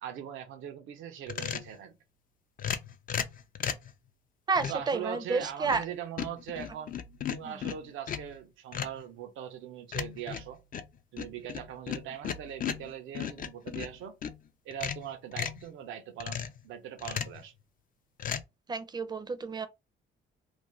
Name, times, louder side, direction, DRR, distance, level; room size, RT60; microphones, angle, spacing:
voice 1, 0.0-1.9 4.7-7.0 7.3-10.6 11.1-14.2 14.6-17.5, right 9 dB, 85° right, 0.6 m, -41 dB
sound 1, 1.3-1.8 2.6-3.9 4.6-4.9 5.4-5.9 6.2-8.4 8.7-9.0 9.9-14.4 14.7-15.6 16.2-16.6 17.0-17.4 18.2-18.4, left 8 dB, 45° left, 0.4 m, -36 dB
voice 2, 4.5-5.8 7.4-7.6 18.7-19.7, right 4 dB, 20° right, 0.4 m, -31 dB
2.5 x 2.1 x 3.0 m
cardioid pair, 90°, 20 cm